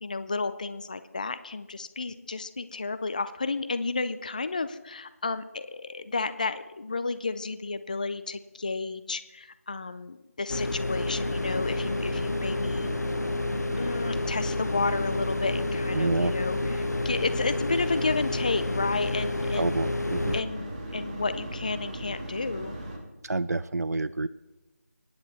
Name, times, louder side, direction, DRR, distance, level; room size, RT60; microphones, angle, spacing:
voice 1, 0.0-12.9 13.8-19.9 20.3-22.7, left 3 dB, 30° left, 12 dB, 0.5 m, -32 dB
sound 1, 10.5-20.4, left 2 dB, 85° left, 0.6 m, -29 dB
sound 2, 11.0-23.0, right 1 dB, 25° right, 2.3 m, -38 dB
voice 2, 15.9-16.3 19.6-20.3 23.2-24.3, right 2 dB, 75° right, 14 dB, 0.5 m, -28 dB
24.5 x 9.7 x 4.2 m, 1.1 s
figure-of-eight pair, 165°, 9 cm